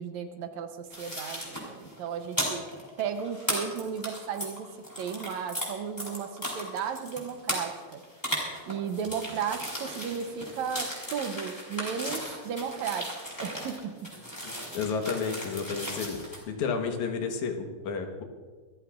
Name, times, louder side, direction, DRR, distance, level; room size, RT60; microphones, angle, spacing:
voice 1, 0.0-2.6 3.0-4.7 5.0-8.0 8.7-14.1, right 7 dB, 75° right, 7 dB, 2.1 m, -34 dB
sound 1, 0.9-5.7 6.0-16.4, equal, 5° left, 3.7 m, -36 dB
voice 2, 14.4-16.2 16.5-18.2, left 5 dB, 75° left, 4 dB, 2.6 m, -31 dB
25.5 x 14.5 x 2.5 m, 1.5 s
omnidirectional pair, 3.5 m